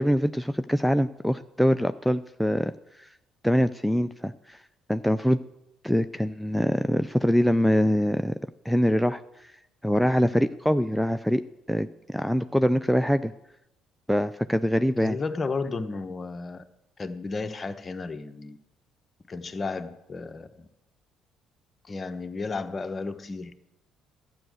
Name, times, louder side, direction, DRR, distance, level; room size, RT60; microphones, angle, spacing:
voice 1, 0.0-2.7 3.0-3.1 3.4-4.6 4.9-5.4 5.8-8.3 8.6-9.5 9.8-11.4 11.7-13.3 14.1-15.2, equal, ahead, 9 dB, 0.5 m, -24 dB
voice 2, 15.0-16.6 17.0-18.6 19.3-20.7 21.9-23.5, left 4 dB, 35° left, 9 dB, 1.0 m, -33 dB
12.5 x 9.1 x 6.4 m, 0.88 s
hypercardioid pair, 60°, 0 cm